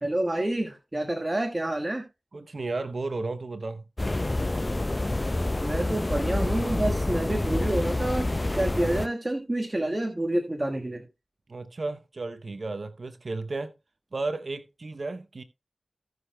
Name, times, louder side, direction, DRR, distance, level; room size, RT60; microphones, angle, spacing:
voice 1, 0.0-2.0 5.6-8.3 8.6-11.0, right 1 dB, 30° right, 1.4 m, -28 dB
voice 2, 2.3-3.8 11.5-13.7 14.1-15.4, right 3 dB, 65° right, 0.7 m, -33 dB
sound 1, 4.0-9.1, left 2 dB, 30° left, 0.4 m, -27 dB
17.5 x 6.5 x 2.2 m
cardioid pair, 40°, 0 cm